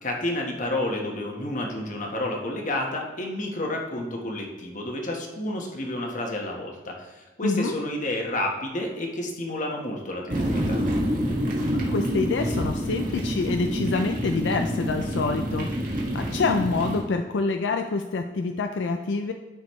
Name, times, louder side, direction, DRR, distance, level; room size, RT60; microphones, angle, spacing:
voice 1, 0.0-10.8, left 1 dB, 45° left, 1 dB, 1.3 m, -30 dB
voice 2, 7.4-7.7 11.8-15.7 16.1-19.3, left 4 dB, 80° left, 5 dB, 0.4 m, -26 dB
sound 1, 10.3-17.0, equal, 50° right, 1.7 m, -27 dB
12.0 x 5.2 x 3.1 m, 1.2 s
head